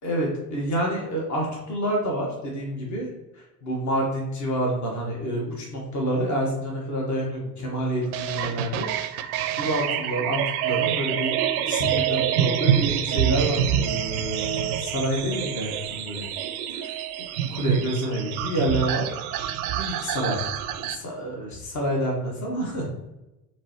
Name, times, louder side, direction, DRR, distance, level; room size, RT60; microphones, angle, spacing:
voice 1, 0.0-3.1 3.3-11.4 11.7-16.3 16.7-16.9 17.5-19.1 19.8-20.4 20.9-22.9, right 1 dB, 40° left, -1 dB, 1.6 m, -28 dB
sound 1, 8.1-21.0, right 10 dB, 70° right, 0.5 m, -27 dB
4.7 x 3.6 x 3.0 m, 0.97 s
figure-of-eight pair, 55°, 46 cm